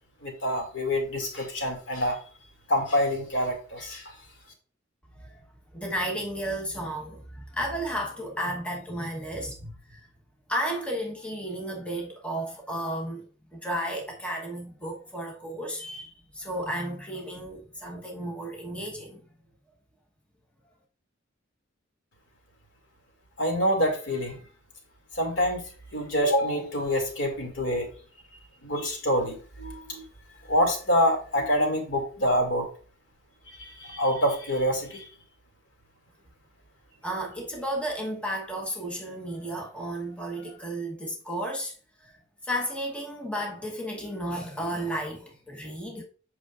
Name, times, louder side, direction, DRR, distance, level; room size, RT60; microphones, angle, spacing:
voice 1, 0.2-2.2 2.7-4.2 23.4-24.4 25.1-25.6 25.9-27.9 28.6-30.0 30.5-32.7 33.5-35.1, equal, 70° left, 2.3 m, -26 dB
voice 2, 5.7-10.0 10.5-13.3 13.5-19.2 37.0-42.1 42.4-46.0, equal, 5° left, 1.0 m, -33 dB
8.0 x 5.8 x 2.4 m
head